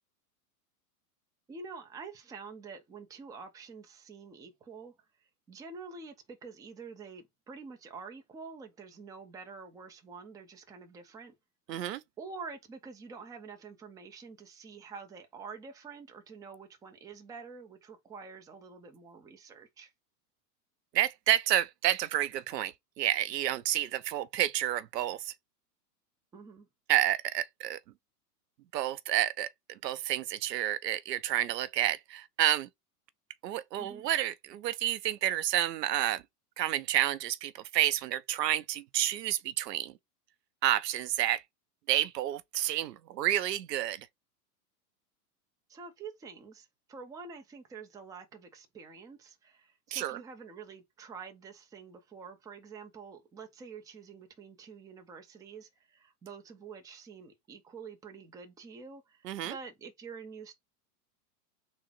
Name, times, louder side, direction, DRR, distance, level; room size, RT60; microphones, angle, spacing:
voice 1, 1.5-11.3 12.2-19.9 26.3-26.7 33.8-34.0 45.7-60.6, right 5 dB, 10° right, 0.4 m, -47 dB
voice 2, 11.7-12.0 20.9-25.3 26.9-27.8 28.7-32.7 33.4-36.2 36.6-39.9 40.6-41.4 41.9-44.1 49.9-50.2 59.2-59.6, right 12 dB, 85° right, 0.6 m, -30 dB
3.8 x 2.1 x 4.2 m
hypercardioid pair, 115°, 48 cm